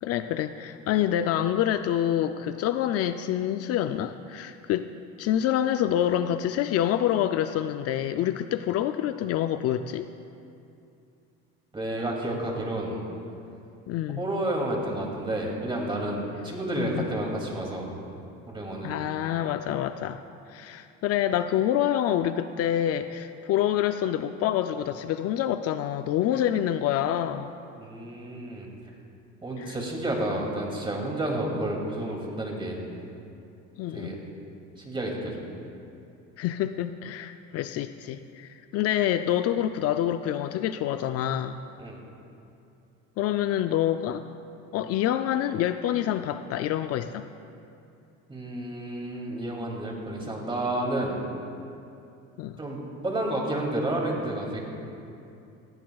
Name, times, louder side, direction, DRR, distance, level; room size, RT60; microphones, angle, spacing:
voice 1, 0.0-4.9 5.2-10.1 13.9-14.3 16.8-17.1 18.8-20.2 20.5-27.5 29.6-29.8 33.8-34.1 36.4-41.6 43.2-44.2 44.7-47.2 52.4-52.6, left 11 dB, 55° left, 9 dB, 0.5 m, -27 dB
voice 2, 11.7-13.0 14.2-17.9 18.5-19.0 27.8-28.7 29.4-32.8 33.9-34.1 34.8-35.4 41.8-42.0 48.3-51.2 52.6-54.6, right 1 dB, 15° right, -1 dB, 2.5 m, -30 dB
18.0 x 15.5 x 2.4 m, 2.6 s
cardioid pair, 115°, 29 cm